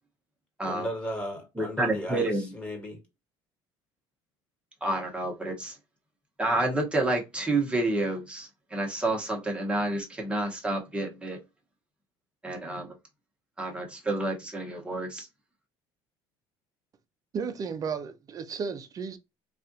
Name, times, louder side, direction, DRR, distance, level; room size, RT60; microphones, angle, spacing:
voice 1, 0.6-3.0, equal, 10° left, 1.6 m, -35 dB
voice 2, 1.6-2.5 4.8-5.8 6.4-11.4 12.4-12.9 13.6-15.3, right 2 dB, 10° right, 1.1 m, -29 dB
voice 3, 17.3-19.2, right 5 dB, 35° right, 0.6 m, -33 dB
3.3 x 2.5 x 2.7 m
cardioid pair, 115°, 10 cm